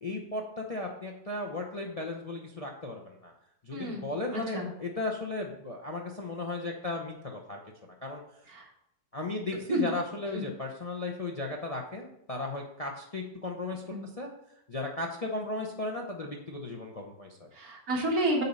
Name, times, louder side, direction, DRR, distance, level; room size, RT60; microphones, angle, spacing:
voice 1, 0.0-3.3 3.6-7.6 8.0-8.2 9.1-14.3 14.7-17.5, left 2 dB, 35° left, 0 dB, 0.6 m, -36 dB
voice 2, 3.7-4.1 4.3-4.7 8.5-8.7 9.7-9.9 10.3-10.4 13.9-14.0 17.5-18.4, right 1 dB, 70° right, -1 dB, 2.2 m, -30 dB
8.2 x 4.3 x 5.4 m, 0.77 s
omnidirectional pair, 1.6 m